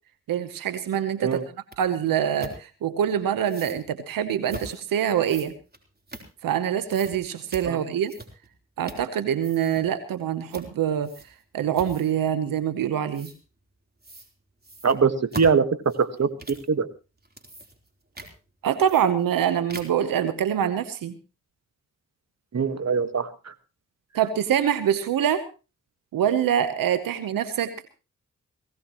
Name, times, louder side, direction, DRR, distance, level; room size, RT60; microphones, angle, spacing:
voice 1, 0.3-1.4 1.8-5.5 6.4-8.1 8.8-11.1 11.5-13.3 18.6-21.1 24.1-25.5 26.1-27.9, right 9 dB, 90° right, 12 dB, 1.0 m, -25 dB
sound 1, 1.7-1.8 2.4-2.6 3.4-3.8 4.5-4.8 5.2-6.6 6.9-7.2 7.5-7.7 8.1-8.5 8.8-9.1 9.4-9.8 10.5-10.7 11.0-11.4 11.7-12.2 13.1-13.4 14.0-14.3 14.6-16.7 17.2-17.9 18.2-18.3 18.8-19.4 19.7-20.1, right 2 dB, 30° right, 3.7 m, -41 dB
voice 2, 14.8-16.9 22.5-23.5, right 5 dB, 50° right, 11 dB, 1.6 m, -23 dB
20.0 x 16.5 x 3.0 m, 0.31 s
supercardioid pair, 40°, 33 cm